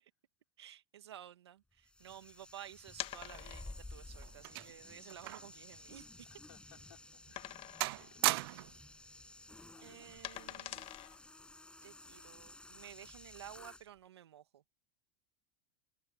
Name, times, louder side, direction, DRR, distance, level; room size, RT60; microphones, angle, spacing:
voice 1, 0.6-6.3 9.8-10.9 11.8-14.6, right 11 dB, 85° right, 1.9 m, -53 dB
sound 1, 1.8-13.9, left 2 dB, 5° left, 5.5 m, -54 dB
sound 2, 2.9-3.9 4.6-4.7 5.2-5.3 5.7-6.7 7.3-8.1 8.4-8.6 8.9-11.5, left 14 dB, 45° left, 1.7 m, -46 dB
sound 3, 3.5-5.6 5.9-6.1 6.7-6.8 7.3-7.6 7.8-8.9 9.8-10.1, right 20 dB, 70° right, 0.4 m, -38 dB
voice 2, 6.3-8.2 9.7-10.3, left 11 dB, 85° left, 3.6 m, -64 dB
hypercardioid pair, 100°, 13 cm